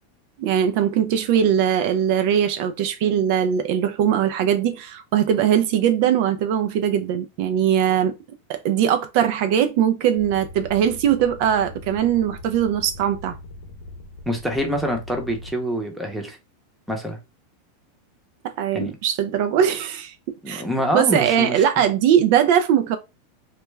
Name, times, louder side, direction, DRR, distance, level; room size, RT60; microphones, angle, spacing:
voice 1, 0.4-8.1 8.5-13.4 18.6-20.1 20.5-20.6 20.9-23.0, right 9 dB, 55° right, 0.3 m, -20 dB
sound 1, 10.2-15.5, left 2 dB, 65° left, 0.6 m, -40 dB
voice 2, 14.3-16.4 16.9-17.2 18.7-19.0 20.4-21.8, equal, ahead, 0.7 m, -26 dB
2.2 x 2.1 x 3.1 m
supercardioid pair, 140°, 0 cm